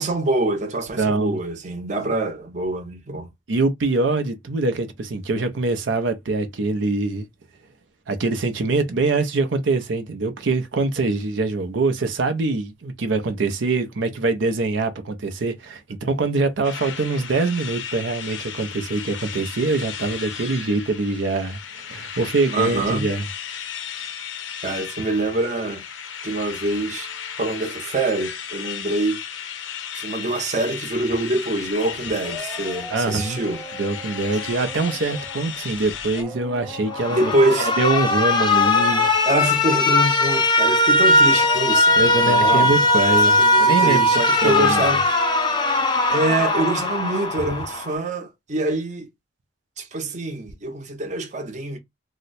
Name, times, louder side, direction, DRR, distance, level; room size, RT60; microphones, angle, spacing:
voice 1, 0.0-3.3 22.5-23.1 24.6-25.8 26.2-27.1 27.4-29.2 29.9-33.6 37.1-37.7 39.3-42.7 43.1-45.1 46.1-49.1 49.8-51.8, right 2 dB, 40° right, 0.8 m, -25 dB
voice 2, 1.0-1.4 3.5-7.3 8.1-23.2 32.9-33.4 33.8-39.1 42.0-44.9, right 3 dB, 75° right, 0.5 m, -24 dB
sound 1, 16.6-36.2, left 8 dB, 90° left, 0.7 m, -35 dB
sound 2, 31.5-47.8, left 2 dB, ahead, 0.8 m, -40 dB
Alarm, 36.9-48.0, left 2 dB, 25° left, 0.5 m, -19 dB
2.8 x 2.1 x 4.0 m
head